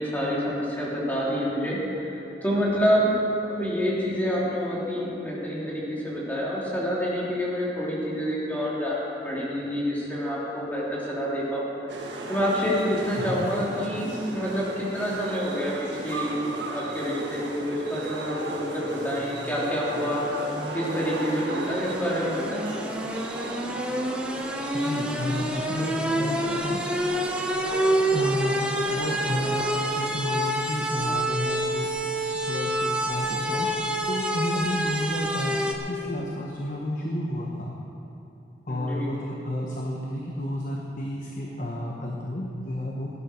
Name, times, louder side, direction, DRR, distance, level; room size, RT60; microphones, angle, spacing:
voice 1, 0.0-3.1 3.4-11.7 12.3-15.7 16.0-16.3 16.7-20.2 20.7-22.7 38.7-39.1, equal, 10° left, -7 dB, 3.2 m, -27 dB
sound 1, 11.9-29.8, right 2 dB, 85° right, 1.7 m, -36 dB
voice 2, 13.2-13.5 24.7-26.8 28.1-28.5 28.9-29.6 29.9-31.9 32.5-35.6 35.9-37.7 38.7-43.1, left 1 dB, 45° left, -2 dB, 1.2 m, -31 dB
sound 2, 19.0-35.7, right 1 dB, 5° right, 1.0 m, -28 dB
18.0 x 11.5 x 4.5 m, 2.9 s
head